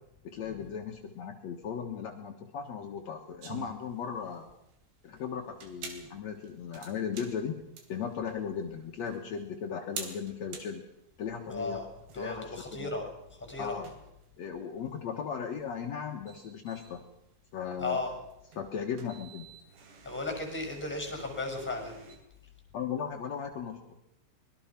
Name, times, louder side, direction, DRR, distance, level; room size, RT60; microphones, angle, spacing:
voice 1, 0.2-4.5 5.0-7.6 7.9-10.8 11.2-11.8 12.1-12.9 13.6-13.9 14.4-17.0 17.5-18.0 18.5-19.5 22.7-24.0, left 7 dB, 65° left, 2 dB, 1.7 m, -37 dB
sound 1, 3.4-22.2, right 5 dB, 65° right, 5.0 m, -49 dB
voice 2, 11.5-11.9 12.1-13.1 13.4-13.8 17.8-18.1 20.0-22.0, left 3 dB, ahead, 4 dB, 5.4 m, -35 dB
24.0 x 21.5 x 6.0 m, 0.82 s
omnidirectional pair, 5.4 m